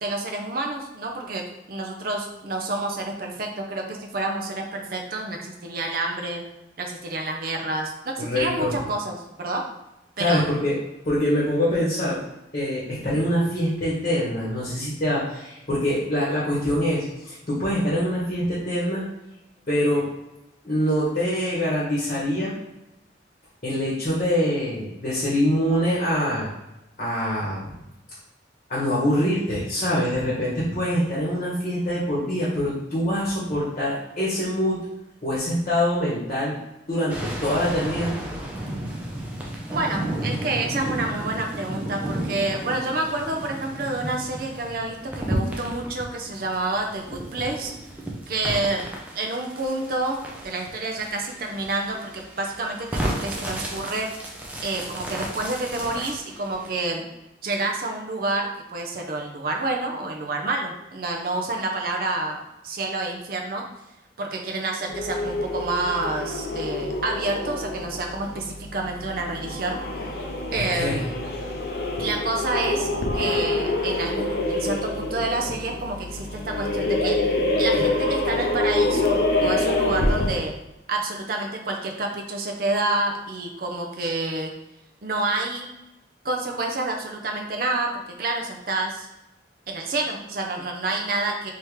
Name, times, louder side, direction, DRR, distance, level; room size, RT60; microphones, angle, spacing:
voice 1, 0.0-6.4 6.8-9.6 10.2-10.4 39.7-47.7 48.3-54.1 54.6-57.0 57.4-63.6 64.2-69.8 70.5-71.2 72.0-72.9 73.1-77.2 77.6-80.5 80.9-84.5 85.0-85.7 86.2-89.1 89.7-91.5, right 2 dB, 55° right, 2 dB, 0.6 m, -28 dB
voice 2, 8.2-8.7 10.2-10.7 11.0-12.2 12.5-19.0 19.7-20.1 20.6-22.5 23.6-26.5 27.0-27.7 28.7-34.8 35.2-36.6 36.9-38.1 70.5-71.0, equal, 40° left, -7 dB, 1.1 m, -24 dB
sound 1, 37.1-56.9, right 1 dB, 10° right, 0.5 m, -33 dB
sound 2, 64.9-80.6, left 2 dB, 60° left, 0.5 m, -26 dB
3.5 x 2.9 x 3.1 m, 0.94 s
head